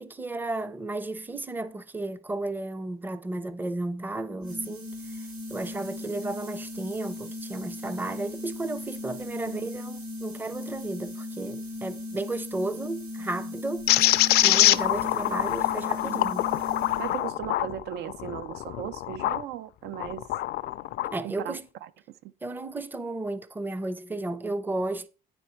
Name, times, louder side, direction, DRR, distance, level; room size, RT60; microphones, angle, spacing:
voice 1, 0.0-4.9 5.5-13.9 14.4-16.5 21.1-21.7 22.4-25.1, right 2 dB, 10° right, 0.5 m, -33 dB
sound 1, 4.4-17.3, left 2 dB, 60° right, 4.5 m, -38 dB
sound 2, 13.9-19.4 19.9-21.1, left 15 dB, 70° left, 0.4 m, -24 dB
voice 2, 16.0-16.4 17.0-20.3 21.2-22.3, right 11 dB, 75° right, 0.5 m, -37 dB
9.3 x 4.3 x 4.4 m
cardioid pair, 110°, 17 cm